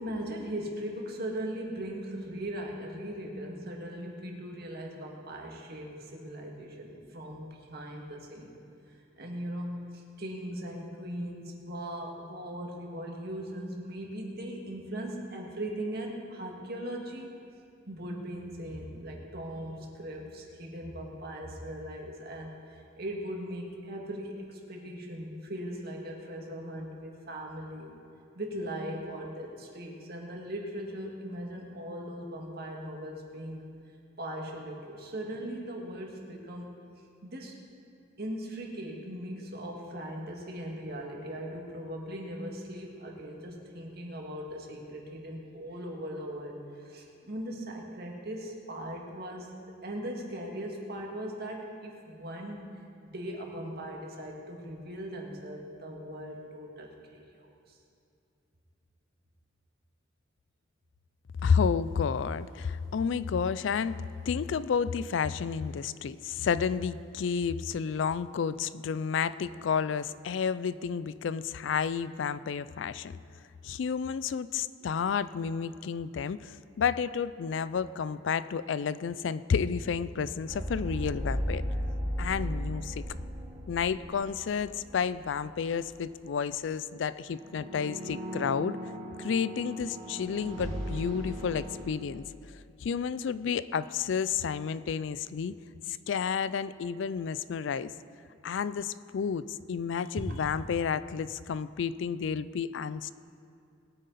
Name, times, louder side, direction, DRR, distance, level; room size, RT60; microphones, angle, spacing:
voice 1, 0.0-8.5 8.9-17.3 17.9-27.9 28.4-33.6 34.2-36.7 37.2-37.6 38.2-52.6 53.0-57.8, right 1 dB, 55° right, 0 dB, 2.0 m, -39 dB
voice 2, 61.4-73.1 73.6-81.6 82.2-83.0 83.7-88.8 89.2-92.2 92.8-95.5 95.9-97.9 98.4-103.1, left 6 dB, 70° left, 15 dB, 0.4 m, -31 dB
sound 1, 80.5-85.3 85.6-85.8 87.3-91.8, equal, 70° right, 2.4 m, -36 dB
21.0 x 9.3 x 4.1 m, 2.4 s
head